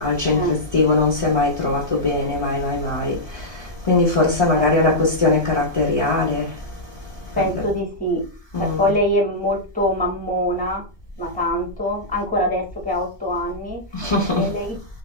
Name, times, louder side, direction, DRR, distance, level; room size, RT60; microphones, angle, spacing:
voice 1, 0.0-3.1 3.9-6.4 7.4-7.6 8.5-8.9 13.9-14.4, left 3 dB, 35° left, 0.9 m, -20 dB
voice 2, 4.5-4.9 7.3-8.2 8.6-10.8 11.2-13.8 14.4-14.7, equal, 10° left, 1.2 m, -23 dB
3.4 x 2.8 x 3.0 m
omnidirectional pair, 1.1 m